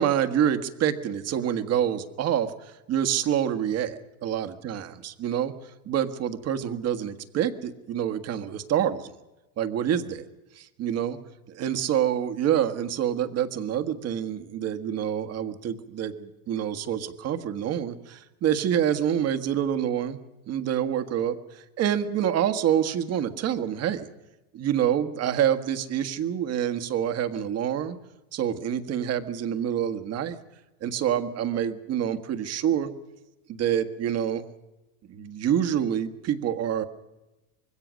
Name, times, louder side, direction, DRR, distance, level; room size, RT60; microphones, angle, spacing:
voice 1, 0.0-5.5 5.8-9.1 9.6-10.2 10.6-11.2 11.5-20.2 20.5-24.1 24.5-28.0 28.3-30.4 30.8-32.9 33.5-34.4 35.1-36.8, right 9 dB, 35° right, 9 dB, 1.6 m, -27 dB
25.5 x 21.5 x 6.4 m, 1.0 s
supercardioid pair, 120°, 43 cm